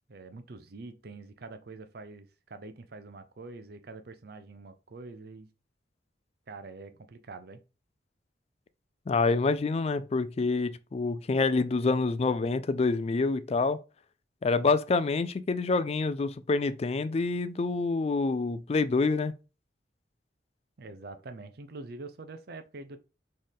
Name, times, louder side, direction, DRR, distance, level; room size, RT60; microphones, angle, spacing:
voice 1, 0.1-5.5 6.5-7.6 20.8-23.0, right 3 dB, 55° right, 0.6 m, -45 dB
voice 2, 9.1-13.8 14.4-19.3, left 3 dB, 35° left, 0.3 m, -27 dB
4.4 x 3.2 x 3.6 m
head